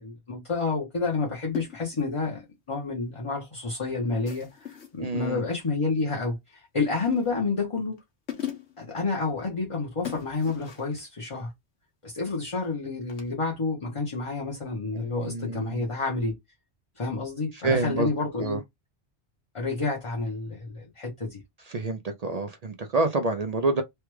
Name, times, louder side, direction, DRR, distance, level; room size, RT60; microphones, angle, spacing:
voice 1, 0.0-8.0 8.8-11.5 12.0-16.4 17.0-18.6 19.5-21.4, left 3 dB, 30° left, 0.8 m, -29 dB
sound 1, 1.5-2.1 4.3-5.0 6.8-7.4 8.0-8.1 8.3-8.9 10.0-11.0 13.1-13.3, left 10 dB, 90° left, 1.3 m, -39 dB
voice 2, 5.0-5.4 14.9-15.8 17.5-18.1 18.4-18.6 21.7-23.8, right 3 dB, 55° right, 0.4 m, -28 dB
3.3 x 2.3 x 3.0 m
omnidirectional pair, 1.1 m